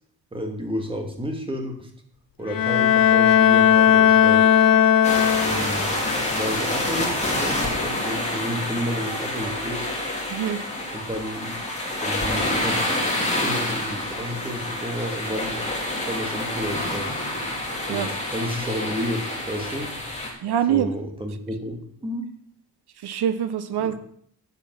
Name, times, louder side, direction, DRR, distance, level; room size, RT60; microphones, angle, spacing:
voice 1, 0.3-1.9 2.4-4.5 5.4-5.9 6.3-9.9 10.9-11.5 12.0-12.8 13.3-15.6 16.1-17.1 17.8-19.9 20.7-22.3 23.8-23.9, equal, 15° right, 3 dB, 1.6 m, -31 dB
Bowed string instrument, 2.5-5.9, left 9 dB, 60° left, 0.7 m, -17 dB
sound 1, 5.0-20.3, left 1 dB, 15° left, 2.7 m, -27 dB
voice 2, 10.3-10.6 17.9-18.1 20.4-20.9 23.0-24.0, right 10 dB, 90° right, 12 dB, 0.8 m, -24 dB
8.3 x 7.8 x 5.9 m, 0.66 s
wide cardioid pair, 155°, 38 cm